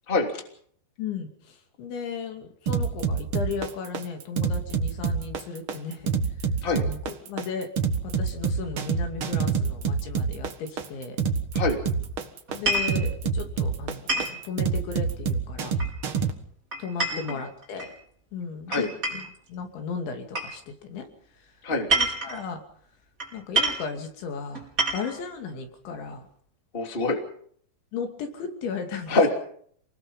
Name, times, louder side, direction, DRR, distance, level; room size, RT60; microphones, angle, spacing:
voice 1, 1.0-6.1 6.7-7.7 8.0-11.2 12.5-15.7 16.8-17.9 18.3-21.1 21.4-21.5 21.9-22.6 23.3-24.6 24.9-26.3 27.9-29.2, left 5 dB, 85° left, 5 dB, 5.0 m, -35 dB
sound 1, 2.7-16.3, right 5 dB, 85° right, 1.1 m, -26 dB
sound 2, 12.5-13.0 14.1-14.4 15.8-16.2 16.7-17.9 18.7-19.4 20.3-20.5 21.7-22.4 23.2-23.3 23.5-23.9 24.5-25.2, right 2 dB, 20° right, 5.3 m, -27 dB
voice 2, 26.7-27.2 29.1-29.3, left 3 dB, 15° left, 3 dB, 2.5 m, -24 dB
28.0 x 20.0 x 5.6 m, 0.62 s
omnidirectional pair, 5.1 m